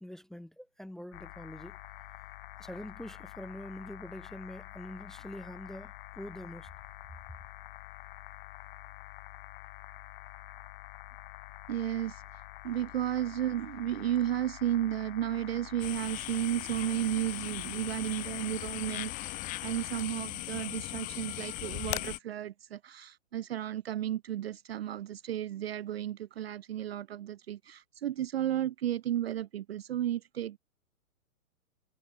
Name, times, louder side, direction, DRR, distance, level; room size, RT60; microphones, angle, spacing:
voice 1, 0.0-1.8 2.6-6.7, left 1 dB, ahead, 0.7 m, -44 dB
Noise filtered midband, 1.1-20.0, left 17 dB, 35° left, 1.8 m, -48 dB
voice 2, 11.7-19.4 19.6-30.6, right 11 dB, 45° right, 0.6 m, -33 dB
sound 1, 15.8-22.2, left 20 dB, 15° left, 1.1 m, -38 dB
hypercardioid pair, 145°, 45 cm